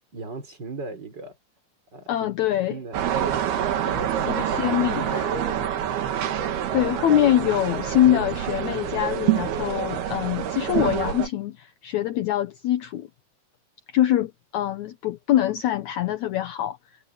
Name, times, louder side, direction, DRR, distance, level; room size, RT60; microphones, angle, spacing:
voice 1, 0.1-1.4 1.9-2.3 2.7-6.0, right 3 dB, 25° right, 4.8 m, -37 dB
voice 2, 2.1-2.8 4.3-5.3 6.7-13.1 13.9-16.8, left 12 dB, 75° left, 1.7 m, -24 dB
sound 1, 2.9-11.3, right 10 dB, 80° right, 3.8 m, -27 dB
omnidirectional pair, 4.5 m